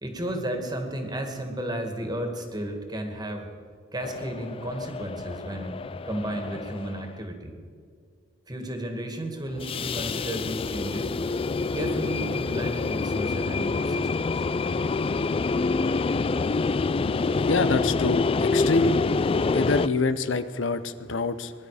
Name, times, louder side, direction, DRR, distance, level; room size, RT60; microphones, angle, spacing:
voice 1, 0.0-3.5 3.9-7.6 8.5-11.1 11.7-14.5, right 1 dB, 20° right, 4 dB, 2.0 m, -33 dB
sound 1, 4.0-7.1 9.5-19.9, left 4 dB, 30° left, 0.3 m, -27 dB
voice 2, 17.2-19.0 19.5-21.5, left 3 dB, 75° left, 12 dB, 0.7 m, -26 dB
21.5 x 11.5 x 5.0 m, 2.2 s
head